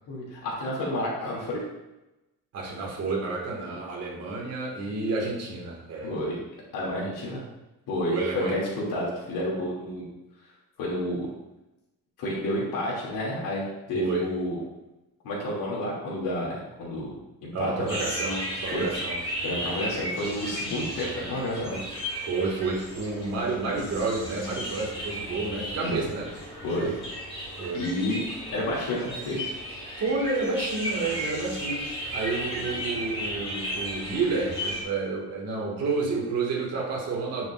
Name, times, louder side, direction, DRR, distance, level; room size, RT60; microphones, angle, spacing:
voice 1, 0.1-1.6 6.0-6.4 6.7-7.4 7.9-10.0 10.8-11.3 12.2-13.6 13.9-14.6 15.2-17.1 17.4-17.9 18.7-18.8 19.4-21.8 25.7-26.0 26.6-27.0 27.7-28.2 28.5-29.5, left 1 dB, 65° left, -5 dB, 2.9 m, -30 dB
voice 2, 2.5-6.2 8.1-8.6 13.9-14.3 17.5-19.2 22.3-26.3 26.7-26.9 27.6-27.9 30.0-37.5, right 3 dB, 45° right, -3 dB, 2.1 m, -30 dB
sound 1, 17.9-34.8, equal, 15° left, 2.8 m, -35 dB
10.0 x 6.4 x 2.6 m, 0.97 s
cardioid pair, 170°, 36 cm